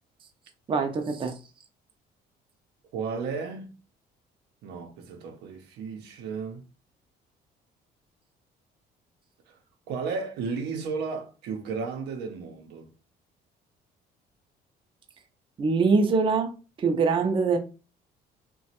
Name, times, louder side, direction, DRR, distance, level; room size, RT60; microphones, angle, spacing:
voice 1, 0.7-1.3 15.6-16.5 16.8-17.6, right 4 dB, 30° right, 0.5 m, -23 dB
voice 2, 2.9-3.7 4.6-6.6 9.5-9.6 9.9-12.9, right 5 dB, 80° right, 0.7 m, -34 dB
2.9 x 2.2 x 2.8 m
cardioid pair, 110°, 17 cm